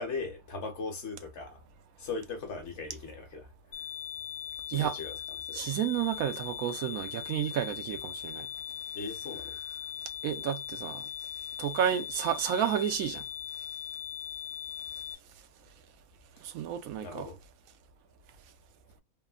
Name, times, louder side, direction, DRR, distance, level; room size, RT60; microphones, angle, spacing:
voice 1, 0.0-1.6 2.0-3.5 4.7-5.2 5.5-5.7 8.9-9.6 17.0-17.4, left 4 dB, 55° left, 1.1 m, -38 dB
sound 1, 3.7-15.2, left 10 dB, 70° left, 0.4 m, -40 dB
voice 2, 5.5-8.5 10.2-11.1 11.6-13.2 16.4-17.3, right 10 dB, 80° right, 1.0 m, -31 dB
3.3 x 2.1 x 2.3 m
omnidirectional pair, 1.5 m